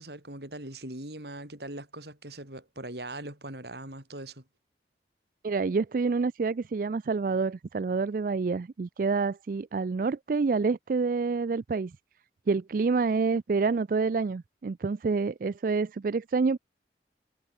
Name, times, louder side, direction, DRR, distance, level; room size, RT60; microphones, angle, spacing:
voice 1, 0.0-4.4, right 1 dB, 70° right, 6.8 m, -41 dB
voice 2, 5.4-11.9 12.5-16.6, right 4 dB, 50° right, 0.4 m, -27 dB
head